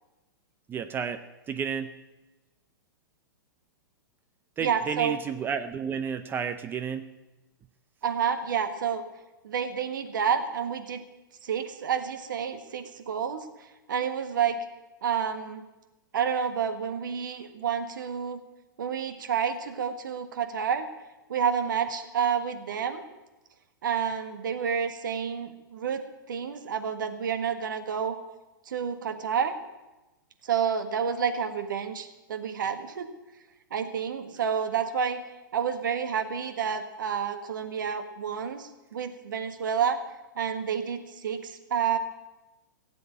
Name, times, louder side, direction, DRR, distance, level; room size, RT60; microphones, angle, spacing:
voice 1, 0.7-1.2 1.5-1.9 4.6-7.0, right 7 dB, 20° right, 9 dB, 0.6 m, -31 dB
voice 2, 4.6-5.2 8.0-9.0 9.4-11.0 11.4-13.5 13.9-14.6 15.0-15.6 16.1-18.4 18.8-20.9 21.3-23.0 23.8-26.0 26.3-28.2 28.6-29.5 30.4-33.1 33.7-35.2 35.5-40.0 40.3-42.0, right 7 dB, 65° right, 8 dB, 1.6 m, -29 dB
16.5 x 7.7 x 8.5 m, 1.1 s
figure-of-eight pair, 110°, 11 cm